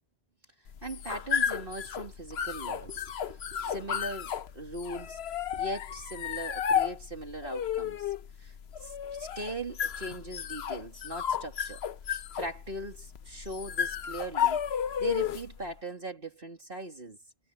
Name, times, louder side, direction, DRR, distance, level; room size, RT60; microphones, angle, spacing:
sound 1, 0.7-15.6, left 8 dB, 65° left, 1.0 m, -33 dB
voice 1, 0.8-5.2 5.5-8.5 8.8-11.8 12.3-14.6 15.0-17.2, right 1 dB, 50° right, 2.8 m, -40 dB
omnidirectional pair, 1.2 m